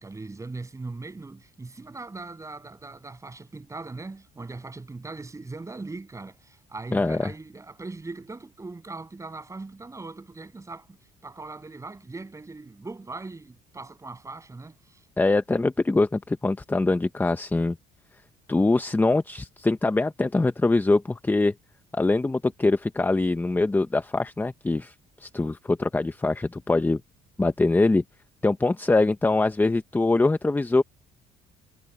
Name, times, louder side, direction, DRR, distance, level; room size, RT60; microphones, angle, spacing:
voice 1, 0.0-11.0 11.2-15.0, right 3 dB, 20° right, 7.2 m, -40 dB
voice 2, 6.9-7.3 15.2-17.8 18.5-21.5 21.9-24.9 25.2-27.0 27.4-28.0 28.4-30.8, left 2 dB, 10° left, 0.7 m, -23 dB
cardioid pair, 110°, 17 cm